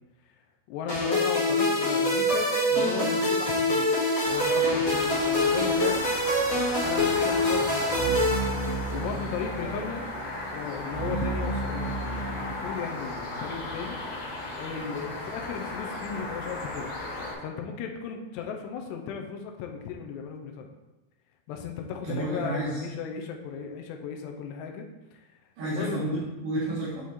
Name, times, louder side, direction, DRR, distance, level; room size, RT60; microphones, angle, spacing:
voice 1, 0.7-3.9 4.3-6.1 6.8-8.3 8.7-10.1 10.5-14.0 14.3-16.9 17.4-20.7 21.5-24.9 25.1-25.2 25.6-26.0, left 6 dB, 85° left, 3 dB, 2.7 m, -36 dB
sound 1, 0.9-9.1, left 1 dB, 45° left, 1.3 m, -25 dB
sound 2, 4.2-17.3, left 2 dB, 60° left, 2.3 m, -36 dB
sound 3, 6.8-12.6, right 3 dB, 90° right, 2.8 m, -34 dB
voice 2, 22.0-22.8 25.6-27.0, right 1 dB, 65° right, -6 dB, 2.3 m, -30 dB
7.9 x 3.1 x 4.2 m, 1.0 s
omnidirectional pair, 4.9 m